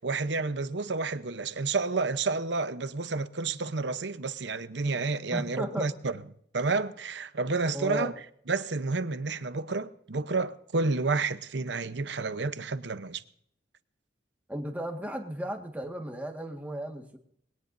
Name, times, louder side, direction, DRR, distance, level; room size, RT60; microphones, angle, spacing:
voice 1, 0.0-6.2 6.5-8.1 8.5-13.2, right 3 dB, 70° right, 0.8 m, -30 dB
voice 2, 5.3-5.9 7.7-8.1 14.5-17.2, right 1 dB, 10° right, 1.7 m, -35 dB
21.0 x 18.5 x 2.7 m
head